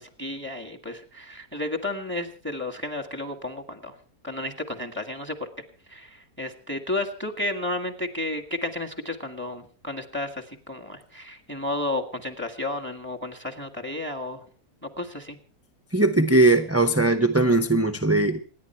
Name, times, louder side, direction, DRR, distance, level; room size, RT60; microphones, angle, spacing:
voice 1, 0.0-4.0 4.2-5.4 5.9-14.4 14.8-15.4, left 1 dB, 5° left, 9 dB, 1.7 m, -32 dB
voice 2, 15.9-18.4, right 2 dB, 15° right, 10 dB, 0.5 m, -20 dB
27.0 x 10.5 x 4.4 m, 0.39 s
omnidirectional pair, 1.6 m